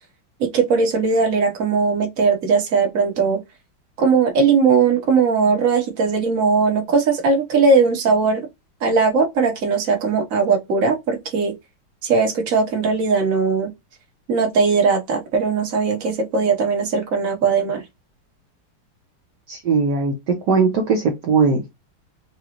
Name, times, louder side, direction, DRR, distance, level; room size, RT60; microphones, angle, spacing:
voice 1, 0.4-3.4 4.0-8.4 8.8-11.5 12.0-13.7 14.3-17.8, right 4 dB, 45° right, 1.5 m, -19 dB
voice 2, 19.5-21.7, right 4 dB, 60° right, 1.3 m, -19 dB
5.1 x 2.2 x 2.9 m
omnidirectional pair, 2.3 m